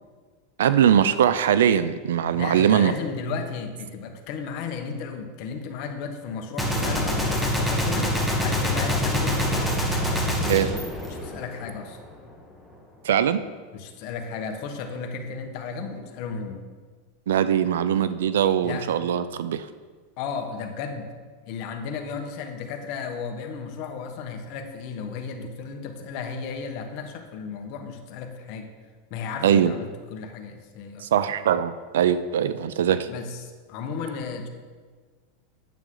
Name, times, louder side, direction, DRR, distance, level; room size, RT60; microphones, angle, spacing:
voice 1, 0.6-2.9 10.5-10.7 13.0-13.4 17.3-19.7 29.4-29.7 31.0-33.1, right 9 dB, 90° right, 13 dB, 0.4 m, -21 dB
voice 2, 2.3-9.7 11.1-12.0 13.7-16.6 18.6-18.9 20.2-21.1 21.4-28.7 29.1-31.1 33.1-34.5, left 5 dB, 50° left, 4 dB, 1.2 m, -34 dB
Gunshot gunfire, 6.6-11.8, equal, ahead, 1.5 m, -25 dB
9.0 x 7.6 x 3.9 m, 1.5 s
supercardioid pair, 140°, 0 cm